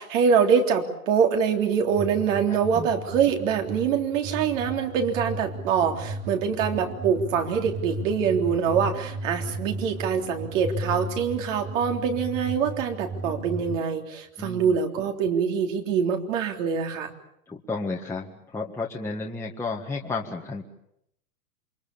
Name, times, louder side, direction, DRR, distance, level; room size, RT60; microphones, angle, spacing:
voice 1, 0.0-17.1, right 7 dB, 60° right, 3 dB, 3.6 m, -24 dB
sound 1, 1.9-13.8, right 1 dB, 35° right, 4.4 m, -35 dB
voice 2, 2.5-2.9 14.4-14.8 17.5-20.6, left 3 dB, 5° left, -2 dB, 1.7 m, -32 dB
28.0 x 23.0 x 7.1 m, 0.79 s
hypercardioid pair, 135°, 44 cm